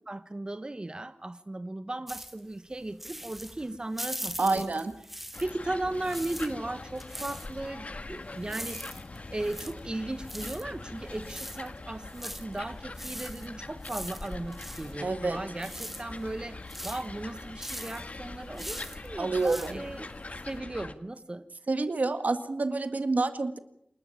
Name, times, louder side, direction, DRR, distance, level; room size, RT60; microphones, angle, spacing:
voice 1, 0.1-4.6 5.4-9.0 9.3-20.1 20.5-21.4, right 2 dB, 35° right, 1.2 m, -36 dB
sound 1, 2.1-5.7 5.9-20.6, equal, 5° right, 1.8 m, -42 dB
voice 2, 4.4-4.9 15.0-15.4 19.2-19.8 21.7-23.6, right 3 dB, 75° right, 1.8 m, -28 dB
sound 2, 5.3-20.9, left 2 dB, 55° left, 1.6 m, -43 dB
28.5 x 13.0 x 7.3 m
wide cardioid pair, 60°, 3 cm